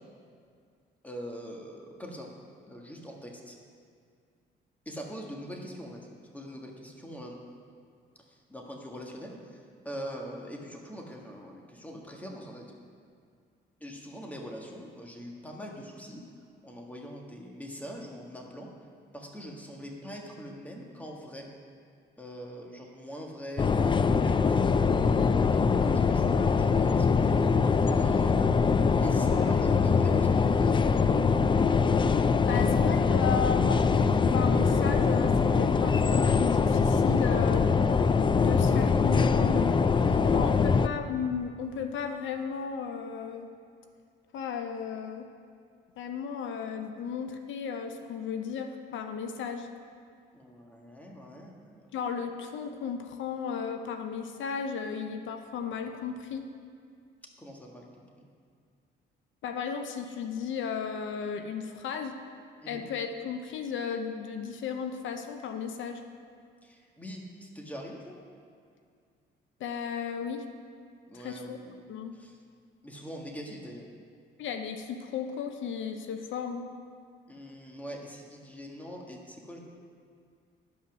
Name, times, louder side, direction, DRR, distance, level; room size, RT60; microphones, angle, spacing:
voice 1, 1.0-2.3 2.7-3.6 4.8-7.4 8.3-12.6 13.8-16.2 16.6-18.7 19.1-21.5 22.2-24.7 25.0-28.3 28.9-30.9 40.1-40.8 50.3-52.0 57.4-58.3 62.6-62.8 66.6-68.1 71.1-71.8 72.1-72.4 72.8-73.8 77.3-79.6, equal, 5° left, 0 dB, 1.6 m, -43 dB
sound 1, 23.6-40.9, left 5 dB, 25° left, 0.4 m, -23 dB
voice 2, 32.5-37.7 38.4-39.7 40.3-43.5 44.3-45.3 46.0-49.7 51.9-56.5 59.4-62.2 62.7-66.0 69.6-70.4 71.1-71.6 71.9-72.1 74.4-76.7, left 6 dB, 75° left, 6 dB, 0.7 m, -34 dB
11.5 x 5.6 x 6.1 m, 2.3 s
cardioid pair, 90°, 20 cm